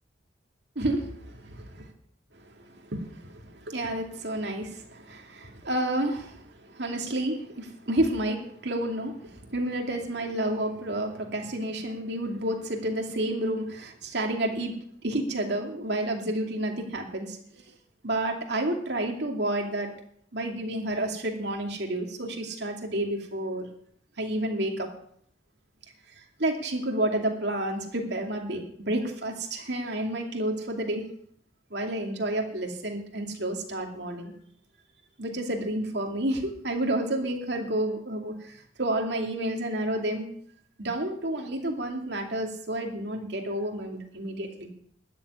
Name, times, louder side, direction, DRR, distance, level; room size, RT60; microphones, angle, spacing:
voice 1, 0.8-1.9 2.3-17.7 18.0-19.9 20.3-23.6 24.2-24.9 26.2-31.0 31.7-34.3 35.2-40.3 40.8-44.7, right 1 dB, 60° right, 2 dB, 2.6 m, -30 dB
12.5 x 7.3 x 10.0 m, 0.65 s
head